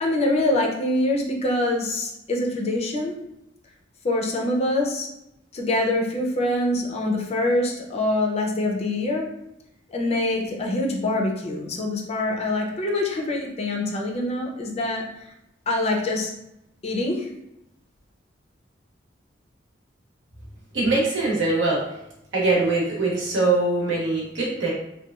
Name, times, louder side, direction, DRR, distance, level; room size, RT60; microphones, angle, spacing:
voice 1, 0.0-3.1 4.0-5.1 5.5-9.3 9.9-15.3 15.7-16.3 16.8-17.3, left 1 dB, 35° left, 0 dB, 0.4 m, -24 dB
voice 2, 20.7-21.8 22.3-24.7, right 2 dB, 75° right, -4 dB, 1.0 m, -22 dB
2.9 x 2.2 x 2.3 m, 0.85 s
head